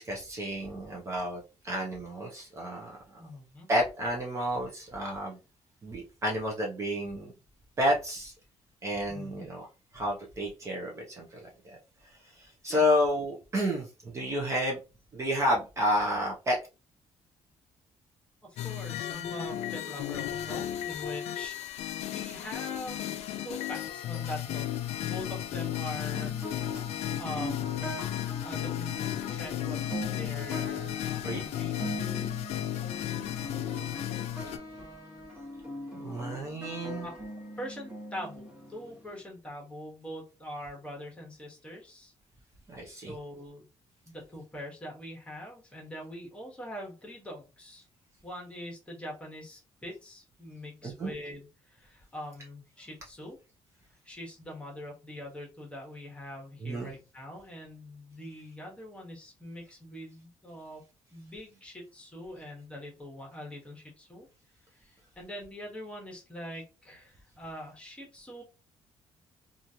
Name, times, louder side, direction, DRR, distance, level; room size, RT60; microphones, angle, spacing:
voice 1, 0.0-3.2 3.7-5.4 5.8-7.3 7.8-8.3 8.8-9.7 9.9-11.8 12.2-14.8 15.1-16.6 31.2-31.4 35.9-37.1 42.8-43.1 50.8-51.1 56.6-56.9, equal, 30° right, -1 dB, 0.7 m, -31 dB
voice 2, 3.2-3.7 9.1-9.5 12.7-12.8 18.6-24.7 25.0-26.8 27.2-27.9 28.2-31.8 37.0-37.1 37.6-42.1 42.9-43.7 44.0-47.8 48.2-53.4 54.0-60.8 61.1-64.3 64.8-68.4, equal, 10° left, -1 dB, 1.2 m, -43 dB
sound 1, 18.6-34.6, left 11 dB, 85° left, 0.4 m, -34 dB
sound 2, 26.1-39.2, left 1 dB, 10° right, 1.1 m, -41 dB
3.0 x 2.4 x 2.7 m, 0.30 s
cardioid pair, 160°, 10 cm